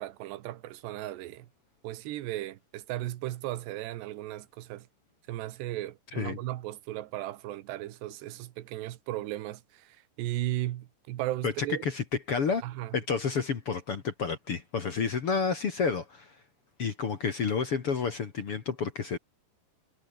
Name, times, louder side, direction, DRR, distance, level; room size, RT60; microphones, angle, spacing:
voice 1, 0.0-1.5 1.8-4.9 5.3-11.9 12.6-13.0, right 15 dB, 80° right, 3.4 m, -36 dB
voice 2, 11.8-12.6 12.9-16.4 16.8-19.2, left 5 dB, 45° left, 2.1 m, -30 dB
omnidirectional pair, 4.9 m